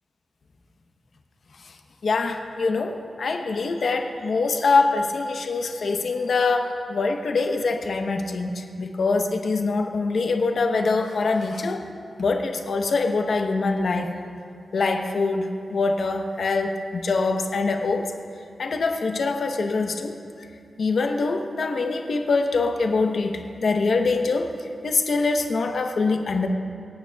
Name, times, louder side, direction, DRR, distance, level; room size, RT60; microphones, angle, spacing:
voice 1, 2.0-11.8 12.2-14.1 14.7-18.1 18.6-20.1 20.8-24.5 24.8-26.5, left 3 dB, 60° left, 4 dB, 0.9 m, -24 dB
24.5 x 9.0 x 2.3 m, 2.7 s
wide cardioid pair, 150°, 0 cm